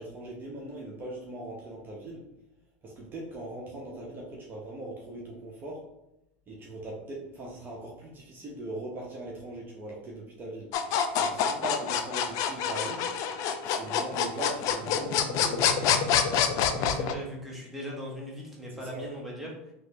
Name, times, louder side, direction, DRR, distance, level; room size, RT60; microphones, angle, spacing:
voice 1, 0.0-2.2 2.8-5.9 6.5-10.7 11.2-13.1 13.6-16.0 18.8-19.0, right 1 dB, 30° right, -3 dB, 0.8 m, -40 dB
sound 1, 10.7-17.1, left 8 dB, 50° left, 0.4 m, -26 dB
voice 2, 16.7-19.7, equal, 5° right, -4 dB, 1.2 m, -39 dB
3.2 x 3.0 x 2.8 m, 0.86 s
hypercardioid pair, 100°, 7 cm